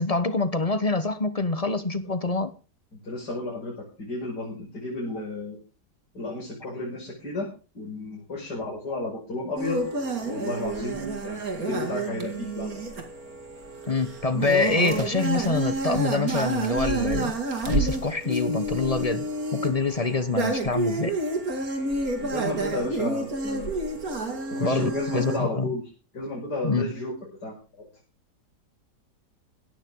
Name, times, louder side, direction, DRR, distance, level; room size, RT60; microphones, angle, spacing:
voice 1, 0.0-2.5 13.9-17.3 17.7-21.1 24.6-25.7 26.6-26.9, left 3 dB, 25° left, 0.9 m, -25 dB
voice 2, 2.9-5.6 6.1-7.5 7.7-9.8 10.2-12.8 22.2-23.7 24.5-25.8 26.1-27.1 27.4-27.9, left 2 dB, 75° left, 6.2 m, -32 dB
sound 1, 9.6-25.4, right 2 dB, 55° right, 2.8 m, -29 dB
17.5 x 13.0 x 3.8 m
omnidirectional pair, 1.8 m